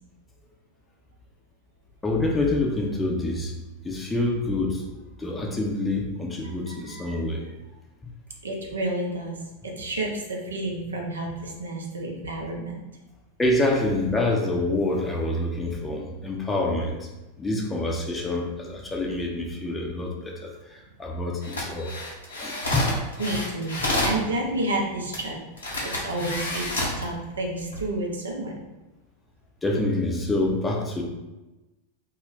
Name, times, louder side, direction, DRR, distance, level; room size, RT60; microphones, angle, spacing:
voice 1, 2.0-3.5 3.8-4.8 5.2-7.4 13.4-17.1 17.4-21.9 22.4-22.9 29.6-31.0, left 2 dB, 10° left, -1 dB, 0.5 m, -26 dB
voice 2, 6.7-7.2 8.4-9.4 9.6-12.8 23.2-25.4 25.9-28.6, right 1 dB, 70° right, 0 dB, 0.5 m, -30 dB
sound 1, 21.4-24.2 25.1-25.2 25.6-27.0 27.6-27.8, left 2 dB, 75° left, 0.7 m, -29 dB
2.3 x 2.1 x 3.7 m, 1.1 s
figure-of-eight pair, 90°, 0 cm